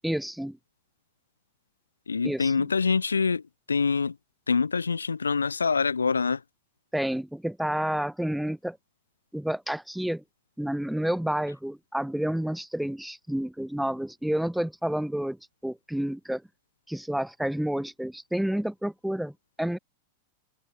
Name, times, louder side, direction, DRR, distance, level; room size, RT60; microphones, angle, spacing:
voice 1, 0.0-0.6 2.2-2.6 6.9-8.8 9.3-10.2 10.6-15.4 15.6-16.4 16.9-19.3 19.6-19.8, right 1 dB, ahead, 1.1 m, -29 dB
voice 2, 2.1-3.4 3.7-4.2 4.5-6.4, left 5 dB, 75° left, 0.6 m, -25 dB
open air
figure-of-eight pair, 90°, 0 cm